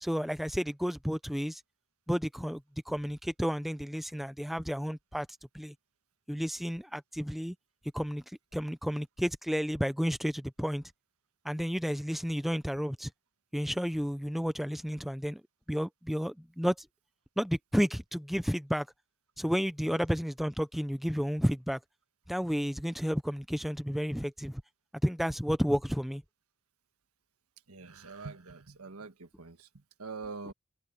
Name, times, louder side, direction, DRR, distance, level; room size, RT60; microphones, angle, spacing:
voice 1, 0.0-1.6 2.1-2.6 2.9-5.3 5.5-5.7 6.3-7.5 7.9-8.2 8.5-10.8 11.4-13.1 13.5-15.4 15.7-16.9 17.4-18.9 19.4-21.8 22.3-24.6 25.0-26.2, equal, ahead, 0.7 m, -31 dB
voice 2, 27.7-30.5, right 4 dB, 85° right, 1.6 m, -44 dB
head